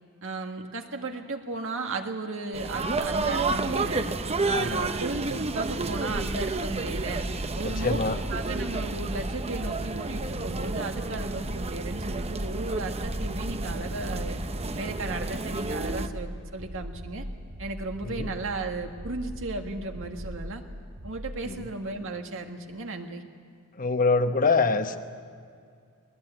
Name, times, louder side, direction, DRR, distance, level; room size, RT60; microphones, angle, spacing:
voice 1, 0.2-4.1 4.4-7.2 7.6-14.4 14.7-17.3 17.6-20.6 21.0-23.2, right 3 dB, 65° right, 4 dB, 1.8 m, -35 dB
sound 1, 2.5-16.1, right 3 dB, 30° right, 0.8 m, -31 dB
voice 2, 4.5-4.9 7.6-8.2 18.0-18.3 21.4-21.7 23.8-25.0, left 4 dB, 40° left, 8 dB, 1.0 m, -25 dB
sound 2, 5.6-21.4, equal, 80° right, 2.4 m, -40 dB
21.0 x 20.0 x 8.9 m, 2.2 s
head